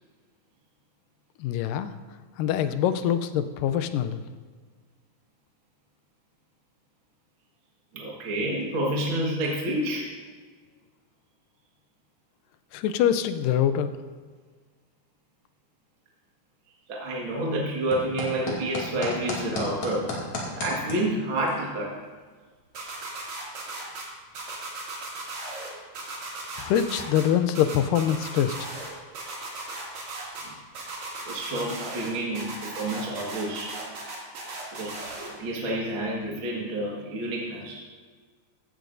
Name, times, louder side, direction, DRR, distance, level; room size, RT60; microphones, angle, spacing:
voice 1, 1.4-1.9 2.4-4.2 12.7-13.9 26.6-28.7, left 10 dB, 90° left, 11 dB, 2.3 m, -24 dB
voice 2, 7.9-10.1 16.9-20.2 20.6-22.0 30.4-30.5 31.3-33.8 34.7-35.0 35.4-37.8, right 1 dB, 45° right, -3 dB, 2.0 m, -29 dB
sound 1, 17.2-33.5, left 2 dB, 60° left, 3.6 m, -41 dB
sound 2, 22.7-24.0 24.3-25.7 25.9-27.2 27.5-28.9 29.1-30.4 30.7-32.1 32.3-35.3, right 3 dB, 60° right, 3.8 m, -36 dB
15.5 x 12.5 x 2.7 m, 1.5 s
omnidirectional pair, 3.8 m